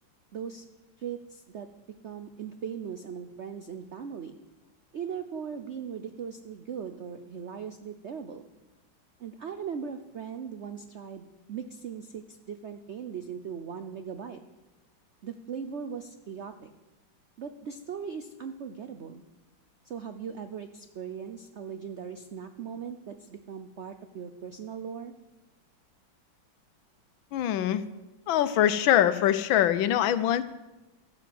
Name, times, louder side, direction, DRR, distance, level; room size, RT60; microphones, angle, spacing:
voice 1, 0.3-0.6 1.0-1.7 2.0-4.4 4.9-8.5 9.2-14.4 15.2-16.7 17.4-19.2 19.8-25.1, right 7 dB, 70° right, 8 dB, 0.6 m, -39 dB
voice 2, 27.3-27.8 28.3-30.4, left 11 dB, 85° left, 14 dB, 1.5 m, -23 dB
13.0 x 9.5 x 7.6 m, 1.1 s
omnidirectional pair, 2.1 m